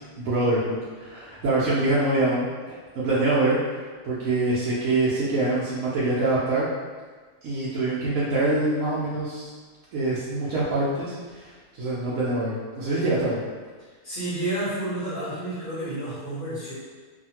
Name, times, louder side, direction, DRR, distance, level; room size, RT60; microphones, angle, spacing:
voice 1, 0.2-3.6 4.0-6.7 7.4-9.5 9.9-13.4, right 2 dB, 80° right, -9 dB, 1.0 m, -25 dB
voice 2, 14.0-16.7, right 1 dB, 45° left, -11 dB, 0.9 m, -30 dB
2.7 x 2.4 x 2.8 m, 1.4 s
omnidirectional pair, 1.4 m